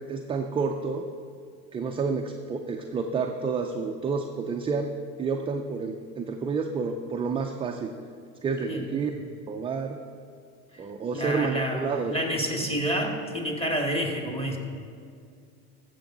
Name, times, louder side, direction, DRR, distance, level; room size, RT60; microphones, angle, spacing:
voice 1, 0.1-1.0 1.7-4.9 5.2-8.1 8.4-9.1 9.5-10.0 10.8-12.3, right 4 dB, 15° right, 3 dB, 0.3 m, -29 dB
voice 2, 11.1-14.6, equal, 15° left, 1 dB, 1.9 m, -29 dB
15.0 x 7.0 x 3.8 m, 2.3 s
hypercardioid pair, 95°, 44 cm